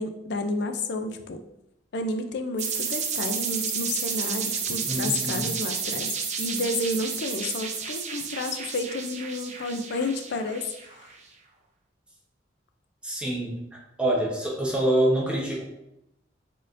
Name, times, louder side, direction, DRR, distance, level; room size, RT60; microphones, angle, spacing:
voice 1, 0.0-1.4 1.9-10.7 10.9-11.1, left 2 dB, 60° left, 7 dB, 0.4 m, -31 dB
sound 1, 2.6-11.1, right 6 dB, 40° right, 0.5 m, -31 dB
voice 2, 4.9-5.5 13.0-15.6, right 1 dB, 5° right, -4 dB, 1.0 m, -26 dB
4.2 x 3.7 x 2.6 m, 0.83 s
head